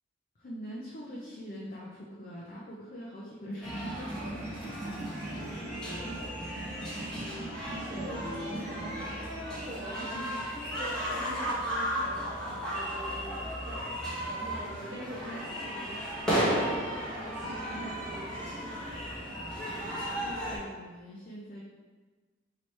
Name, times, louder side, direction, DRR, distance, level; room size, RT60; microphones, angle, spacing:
voice 1, 0.4-4.3 4.6-4.8 20.2-21.6, equal, 50° left, -6 dB, 0.6 m, -43 dB
sound 1, 3.6-20.6, equal, 5° left, 1.0 m, -34 dB
sound 2, 4.4-9.4, equal, 15° right, 0.5 m, -46 dB
voice 2, 6.5-18.8, right 1 dB, 60° right, -4 dB, 1.0 m, -44 dB
4.4 x 2.9 x 3.2 m, 1.3 s
head